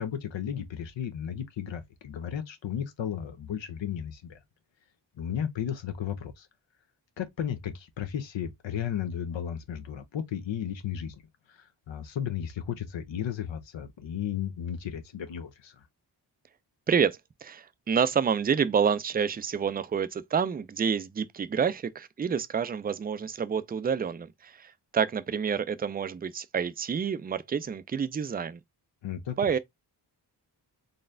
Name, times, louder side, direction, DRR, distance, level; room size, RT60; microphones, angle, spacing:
voice 1, 0.0-4.4 5.2-6.5 7.2-11.2 11.5-15.8 29.0-29.6, left 9 dB, 80° left, 0.8 m, -34 dB
voice 2, 16.9-28.6 29.4-29.6, right 7 dB, 25° right, 0.3 m, -28 dB
4.0 x 3.1 x 2.6 m
wide cardioid pair, 95°, 44 cm